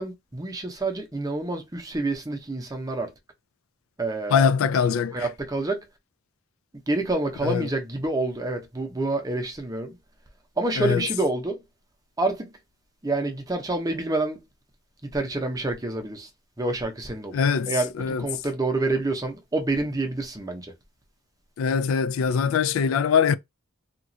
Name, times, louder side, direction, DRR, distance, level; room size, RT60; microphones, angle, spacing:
voice 1, 0.0-3.1 4.0-4.5 5.1-5.8 6.9-9.9 10.6-11.6 12.2-12.5 13.0-14.4 15.1-16.3 16.6-17.4 17.7-20.7, right 2 dB, 15° right, 0.6 m, -27 dB
voice 2, 4.3-5.3 7.4-7.7 10.8-11.1 17.3-18.3 21.6-23.4, left 6 dB, 80° left, 0.3 m, -22 dB
2.9 x 2.3 x 2.6 m
head